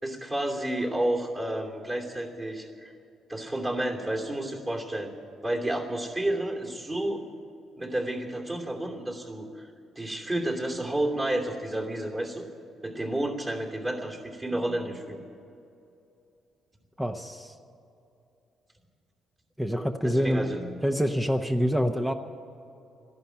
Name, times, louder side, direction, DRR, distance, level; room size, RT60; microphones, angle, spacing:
voice 1, 0.0-2.9 3.3-5.1 5.4-7.2 7.8-9.7 10.0-12.5 12.8-15.2 20.0-20.8, right 1 dB, 25° right, 1 dB, 2.7 m, -31 dB
voice 2, 17.0-17.5 19.6-20.5 20.8-22.1, equal, 5° right, 6 dB, 0.8 m, -26 dB
13.5 x 11.0 x 9.5 m, 2.7 s
cardioid pair, 90°, 0 cm